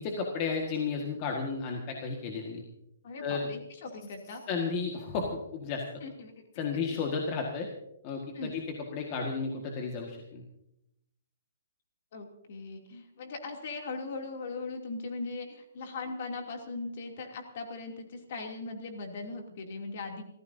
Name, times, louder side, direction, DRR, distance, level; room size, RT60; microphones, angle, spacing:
voice 1, 0.0-2.6 3.2-3.5 4.5-5.8 6.6-7.7 8.0-8.6 8.9-10.4, left 5 dB, 25° left, 1 dB, 1.7 m, -33 dB
voice 2, 3.0-4.4 6.0-6.3 8.3-8.5 12.1-20.2, left 3 dB, 45° left, 3 dB, 2.8 m, -39 dB
29.5 x 15.0 x 2.7 m, 0.82 s
hypercardioid pair, 170°, 0 cm